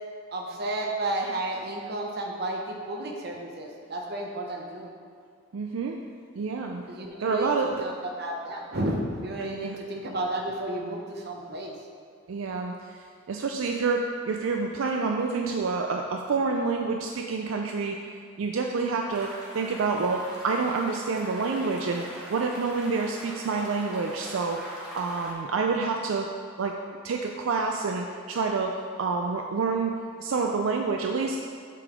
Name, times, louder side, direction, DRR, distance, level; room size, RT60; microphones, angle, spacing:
voice 1, 0.3-4.9 6.9-7.5 7.8-11.8, right 1 dB, 50° right, 1 dB, 0.8 m, -32 dB
voice 2, 5.5-6.0 6.4-6.8 7.2-7.8 9.4-9.8 12.3-13.0 13.3-18.0 18.4-19.3 19.5-26.3 26.6-26.7 27.0-28.7 29.0-31.4, right 4 dB, 75° right, 2 dB, 0.4 m, -28 dB
sound 1, 19.1-25.3, equal, 5° right, 1.1 m, -42 dB
7.5 x 3.9 x 5.0 m, 2.2 s
head